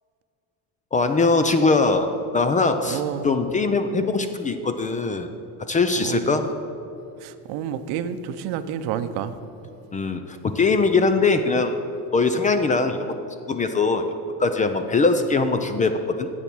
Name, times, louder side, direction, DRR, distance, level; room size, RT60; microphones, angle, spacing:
voice 1, 0.9-5.3 5.7-6.5 9.9-11.8 12.1-13.1 13.5-14.0 14.4-16.3, left 3 dB, 20° left, 8 dB, 0.4 m, -21 dB
voice 2, 2.9-3.3 6.0-6.4 7.2-9.4, right 9 dB, 70° right, 11 dB, 0.7 m, -29 dB
10.0 x 7.3 x 6.0 m, 2.8 s
supercardioid pair, 120°, 42 cm